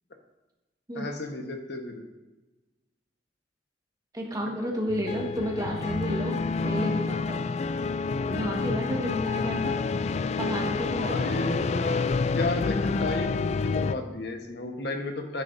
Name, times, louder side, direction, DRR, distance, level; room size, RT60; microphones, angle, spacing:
voice 1, 0.9-2.0 11.1-15.4, left 2 dB, 70° left, 4 dB, 1.2 m, -33 dB
voice 2, 4.1-7.4 8.3-9.8 10.4-11.4, equal, 20° right, -1 dB, 1.5 m, -32 dB
sound 1, 4.9-13.9, left 4 dB, 40° left, 0.3 m, -28 dB
11.0 x 8.9 x 2.7 m, 1.1 s
head